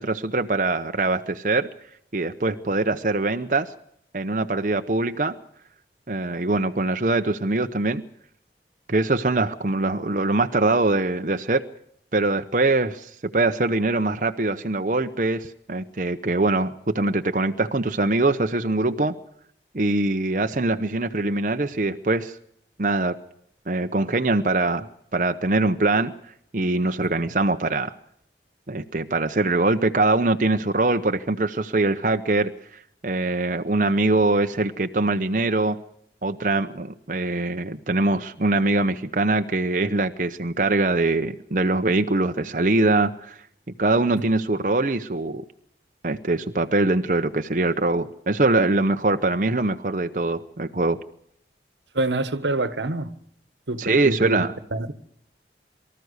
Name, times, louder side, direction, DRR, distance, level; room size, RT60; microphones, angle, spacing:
voice 1, 0.0-1.7 2.1-3.7 4.1-5.4 6.1-8.0 8.9-11.6 12.1-19.1 19.7-22.4 22.8-23.2 23.7-26.1 26.5-27.9 28.7-35.8 36.2-43.4 43.8-45.4 46.0-51.0 53.8-54.5, right 2 dB, 45° right, 0.9 m, -23 dB
voice 2, 51.9-53.1 53.7-54.4 54.7-54.9, right 2 dB, 90° right, 1.4 m, -26 dB
24.0 x 14.0 x 8.1 m
head